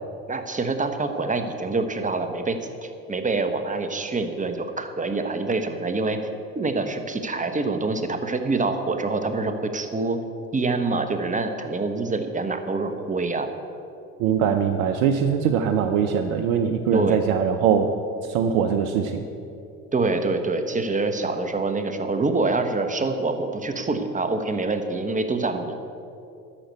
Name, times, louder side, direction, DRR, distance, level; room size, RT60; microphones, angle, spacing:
voice 1, 0.3-6.2 6.5-10.2 10.5-13.5 16.9-17.2 19.9-25.7, right 3 dB, 15° right, 7 dB, 1.2 m, -26 dB
voice 2, 14.2-17.9 18.3-19.2, right 7 dB, 70° right, 7 dB, 0.8 m, -22 dB
11.5 x 6.8 x 8.1 m, 2.7 s
hypercardioid pair, 60°, 43 cm